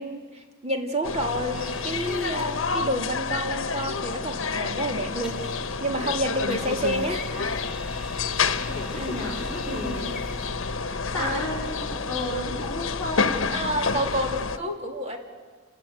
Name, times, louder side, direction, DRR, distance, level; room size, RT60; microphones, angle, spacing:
voice 1, 0.0-5.4 5.8-7.5 8.0-8.3 8.9-9.3 9.6-10.1 10.8-11.5 13.5-15.2, right 1 dB, 35° right, 3 dB, 2.7 m, -30 dB
sound 1, 1.0-14.6, left 4 dB, 70° left, 1.1 m, -29 dB
sound 2, 1.5-2.6 5.2-6.0 6.5-10.7, left 2 dB, 5° right, 3.1 m, -44 dB
voice 2, 8.6-10.0 11.1-13.3, left 1 dB, 15° left, -8 dB, 4.8 m, -33 dB
29.0 x 14.5 x 9.4 m, 1.5 s
head